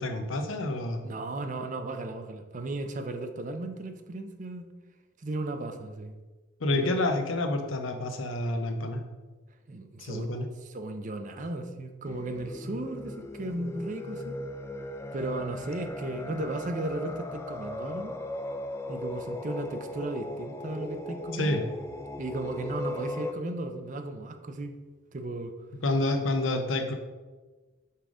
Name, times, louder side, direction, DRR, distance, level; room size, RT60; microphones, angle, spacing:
voice 1, 0.0-1.1 6.6-9.0 10.0-10.5 21.3-21.6 25.8-26.9, left 2 dB, 85° left, 5 dB, 0.8 m, -28 dB
voice 2, 1.0-4.7 5.2-6.1 6.7-7.0 9.7-10.3 10.6-14.4 15.1-18.2 18.9-21.6 22.2-24.8 25.1-25.5, right 2 dB, 40° right, 7 dB, 0.5 m, -35 dB
sound 1, 12.0-23.3, left 1 dB, 15° left, 0.3 m, -38 dB
5.5 x 3.7 x 4.9 m, 1.3 s
head